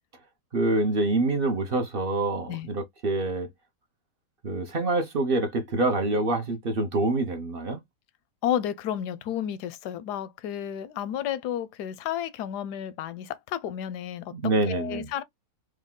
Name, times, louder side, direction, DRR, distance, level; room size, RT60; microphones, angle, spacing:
voice 1, 0.5-3.5 4.4-7.8 14.3-15.1, right 2 dB, 50° right, 0.7 m, -26 dB
voice 2, 8.4-15.2, left 10 dB, 80° left, 1.2 m, -32 dB
4.8 x 2.2 x 3.7 m
omnidirectional pair, 1.8 m